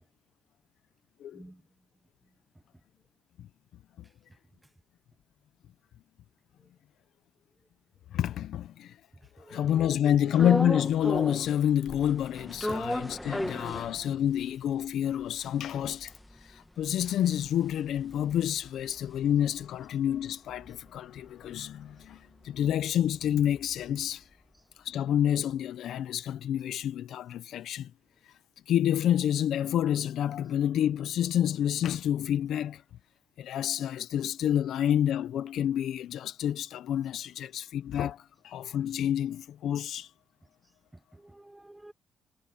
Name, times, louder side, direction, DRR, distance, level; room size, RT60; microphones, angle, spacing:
voice 1, 8.1-8.9 9.5-16.1 16.4-24.2 24.8-27.9 28.7-32.8 33.4-40.1, left 10 dB, 75° left, 0.8 m, -28 dB
voice 2, 9.4-10.3 41.1-41.9, right 1 dB, 10° right, 0.9 m, -47 dB
sound 1, 10.3-11.5 11.9-14.4 14.8-14.9 15.1-19.6 19.9-24.0, left 1 dB, 5° left, 1.7 m, -36 dB
cardioid pair, 90°, 0 cm